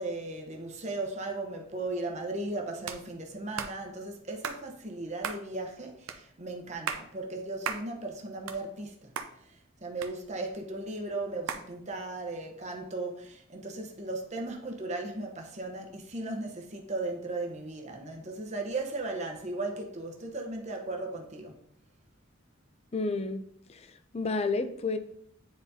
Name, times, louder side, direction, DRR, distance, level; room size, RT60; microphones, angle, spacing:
voice 1, 0.0-9.1 9.8-21.6, right 2 dB, 35° right, 0.9 m, -36 dB
sound 1, 2.9-3.0 3.6-3.8 4.4-4.6 5.2-5.4 6.1-6.2 6.7-7.1 7.6-7.9 8.3-8.9 9.2-9.3 10.0-10.6 11.5-11.7, right 6 dB, 85° right, 0.6 m, -35 dB
voice 2, 22.9-23.4 23.7-23.9 24.1-25.0, left 3 dB, 30° left, 0.5 m, -30 dB
9.4 x 4.1 x 2.7 m
head